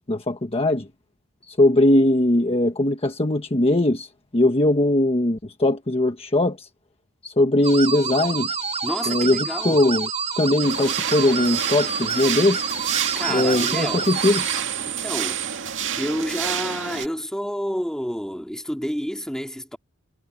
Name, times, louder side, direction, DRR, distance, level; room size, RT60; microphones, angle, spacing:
voice 1, 0.1-0.9 1.4-6.7 7.2-8.5 9.1-10.1 10.4-12.7 13.3-14.4, left 1 dB, 25° left, 1.3 m, -20 dB
sound 1, 7.6-14.6, right 6 dB, 30° right, 4.4 m, -28 dB
voice 2, 8.8-9.8 13.1-14.1 14.8-15.4 16.0-19.8, equal, 5° left, 3.2 m, -29 dB
sound 2, 10.6-17.1, right 9 dB, 60° right, 2.1 m, -29 dB
head